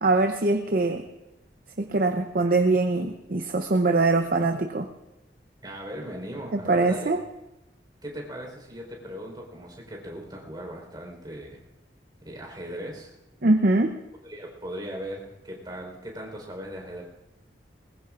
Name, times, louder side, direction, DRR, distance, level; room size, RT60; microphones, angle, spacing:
voice 1, 0.0-1.0 1.8-4.9 6.5-7.2 13.4-13.9, right 2 dB, 55° right, 5 dB, 0.7 m, -23 dB
voice 2, 5.6-7.2 8.0-11.6 12.2-13.1 14.2-17.0, equal, 25° right, 0 dB, 4.3 m, -38 dB
21.0 x 21.0 x 2.5 m, 0.96 s
head